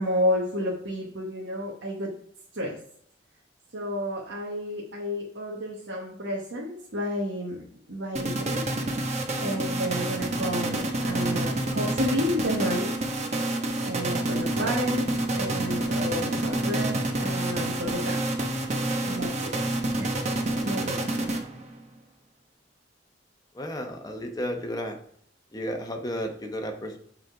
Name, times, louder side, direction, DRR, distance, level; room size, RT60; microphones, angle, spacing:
voice 1, 0.0-2.1 2.5-2.8 3.7-8.6 9.4-13.0 13.8-18.2 19.0-19.6 19.9-20.3 20.6-21.1, equal, 85° right, -3 dB, 1.1 m, -31 dB
sound 1, 8.2-21.8, right 1 dB, 40° right, 0.9 m, -28 dB
voice 2, 23.5-25.0 25.5-27.0, equal, 20° left, 3 dB, 0.9 m, -33 dB
8.1 x 3.8 x 4.6 m, 0.63 s
head